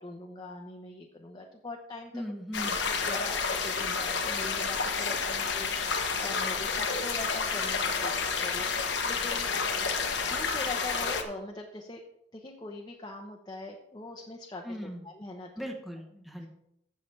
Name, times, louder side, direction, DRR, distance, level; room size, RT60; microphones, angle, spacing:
voice 1, 0.0-2.2 3.0-9.5 10.3-12.0 12.3-15.7, left 2 dB, 25° left, 0 dB, 0.9 m, -42 dB
voice 2, 2.1-2.8 14.6-15.0 15.6-16.5, equal, ahead, 2 dB, 1.1 m, -38 dB
sound 1, 2.5-11.2, left 5 dB, 80° left, 1.2 m, -30 dB
15.5 x 6.8 x 3.3 m, 0.80 s
head